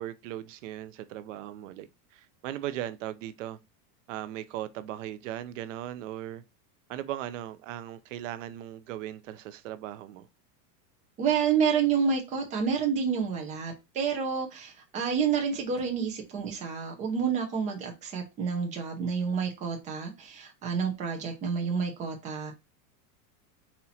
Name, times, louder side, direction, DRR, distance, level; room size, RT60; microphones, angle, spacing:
voice 1, 0.0-3.6 4.1-6.4 6.9-10.3, right 12 dB, 50° right, 0.5 m, -38 dB
voice 2, 11.2-22.5, right 6 dB, 15° right, 0.7 m, -29 dB
4.3 x 2.9 x 4.0 m
supercardioid pair, 175°, 49 cm